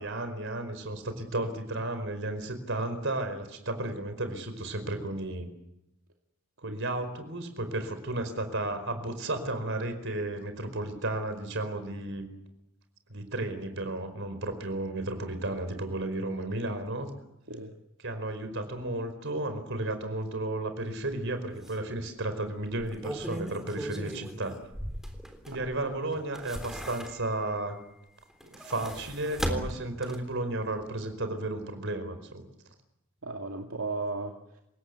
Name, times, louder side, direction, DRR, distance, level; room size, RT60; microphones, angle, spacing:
voice 1, 0.0-5.5 6.6-12.2 13.1-17.1 18.0-24.6 25.5-27.8 28.5-32.4, right 2 dB, 60° right, 9 dB, 4.9 m, -33 dB
sound 1, 21.1-21.2 21.6-21.7 22.7-25.7 26.1-27.5 28.3-30.4 30.8-30.9, equal, ahead, 3.6 m, -37 dB
voice 2, 33.2-34.6, right 3 dB, 80° right, 2 dB, 2.4 m, -36 dB
29.0 x 18.0 x 8.2 m, 0.85 s
head